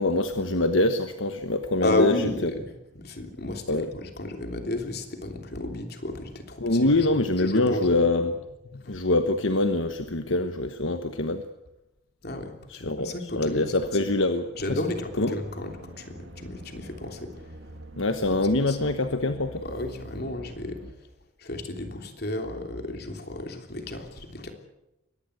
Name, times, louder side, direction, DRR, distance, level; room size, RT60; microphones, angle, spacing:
voice 1, 0.0-2.1 3.7-3.9 6.6-8.3 8.7-11.4 12.7-14.8 15.2-15.4 18.0-19.6, left 2 dB, 70° left, 8 dB, 1.3 m, -24 dB
voice 2, 1.8-2.7 2.9-7.1 7.4-8.0 8.8-8.9 12.2-14.1 14.6-17.3 17.7-17.8 18.3-18.4 18.7-18.8 19.5-20.8 21.4-24.5, left 2 dB, 50° left, 4 dB, 3.2 m, -32 dB
sound 1, 15.4-20.9, right 1 dB, 60° right, 2.2 m, -45 dB
23.0 x 19.0 x 8.1 m, 0.94 s
head